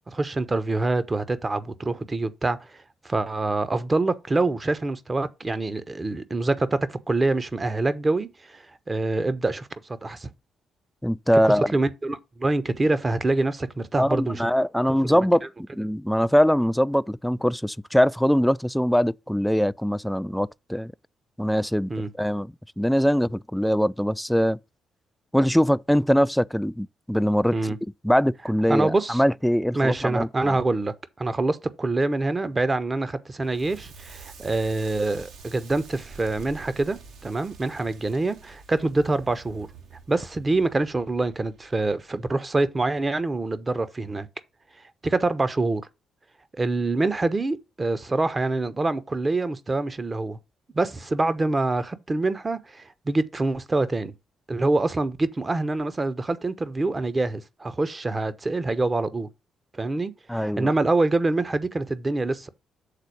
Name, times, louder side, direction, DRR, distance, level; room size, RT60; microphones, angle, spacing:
voice 1, 0.1-9.7 10.0-10.3 11.4-14.5 15.1-15.3 21.9-22.1 27.5-27.8 28.7-29.2 29.7-39.7 40.1-44.3 45.0-45.8 46.6-50.4 50.7-54.1 54.5-59.3 59.7-62.5, right 2 dB, 25° right, 0.9 m, -25 dB
voice 2, 11.0-11.7 14.0-15.5 15.7-20.9 21.4-21.9 22.2-24.6 25.3-27.6 28.0-30.6 60.3-60.7, equal, 5° left, 0.3 m, -22 dB
Crackle, 33.4-42.4, right 5 dB, 65° right, 1.2 m, -47 dB
6.7 x 4.1 x 6.1 m
figure-of-eight pair, 40°, 0 cm